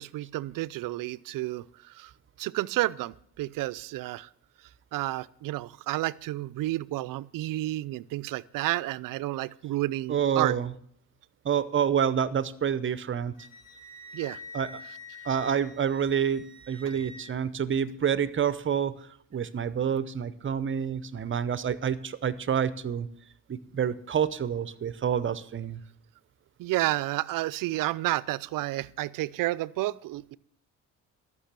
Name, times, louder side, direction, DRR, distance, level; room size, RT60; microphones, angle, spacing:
voice 1, 0.0-2.1 2.4-4.3 4.9-10.6 14.1-14.4 16.9-17.0 26.6-30.4, right 17 dB, 65° right, 19 dB, 0.5 m, -31 dB
voice 2, 10.1-10.7 11.4-13.3 14.5-14.8 15.2-19.0 19.3-23.1 23.5-25.8, right 8 dB, 35° right, 15 dB, 0.7 m, -28 dB
Wind instrument woodwind instrument, 13.3-17.2, left 3 dB, 80° left, 4.6 m, -46 dB
13.5 x 6.1 x 7.4 m, 0.67 s
cardioid pair, 85°, 35 cm